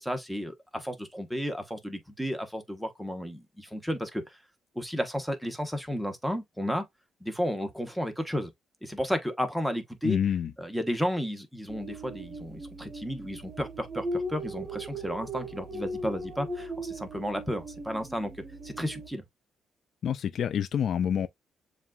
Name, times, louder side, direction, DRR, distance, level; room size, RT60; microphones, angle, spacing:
voice 1, 0.0-4.4 4.7-6.8 7.2-8.5 8.8-10.2 10.6-18.3 18.6-19.2, equal, ahead, 1.1 m, -33 dB
voice 2, 10.0-10.5 20.0-21.3, left 8 dB, 60° left, 0.3 m, -27 dB
sound 1, 11.7-19.1, right 1 dB, 45° right, 1.0 m, -38 dB
7.2 x 2.5 x 2.4 m
cardioid pair, 90°, 0 cm